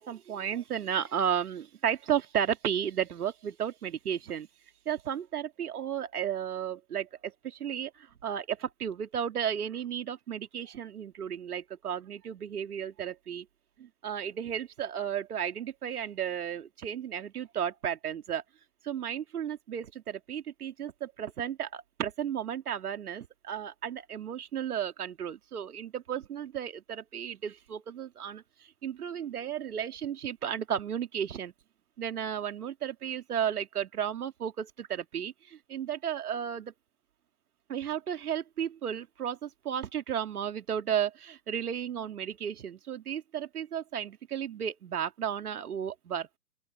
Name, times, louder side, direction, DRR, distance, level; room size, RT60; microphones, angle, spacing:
voice 1, 0.0-4.5 4.9-13.5 13.8-18.4 18.8-31.5 32.0-36.7 37.7-46.4, right 9 dB, 75° right, 2.6 m, -34 dB
open air
hypercardioid pair, 130°, 46 cm